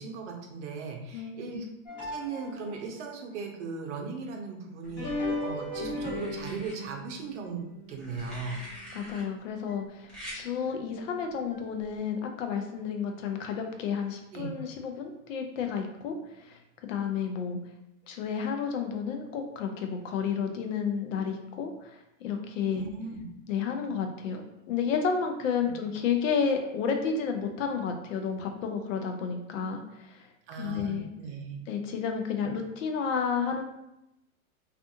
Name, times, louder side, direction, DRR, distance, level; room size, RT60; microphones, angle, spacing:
voice 1, 0.0-1.7 2.0-8.6 14.3-14.5 22.7-23.2 25.6-25.7 30.5-31.6 32.4-32.5, right 4 dB, 55° right, 2 dB, 0.7 m, -38 dB
voice 2, 1.1-1.6 8.9-17.6 18.1-22.8 23.5-24.4 24.7-30.3 30.6-31.1 31.7-33.6, left 6 dB, 65° left, 4 dB, 0.6 m, -31 dB
sound 1, 1.9-3.0 4.8-9.2 9.7-9.8 10.6-10.7 11.5-11.6, left 1 dB, 25° left, 1.0 m, -37 dB
sound 2, 4.8-5.5 6.1-6.7 7.9-9.2 10.1-10.4 11.8-12.0, equal, ahead, 0.7 m, -44 dB
2.5 x 2.3 x 2.6 m, 0.86 s
hypercardioid pair, 125°, 42 cm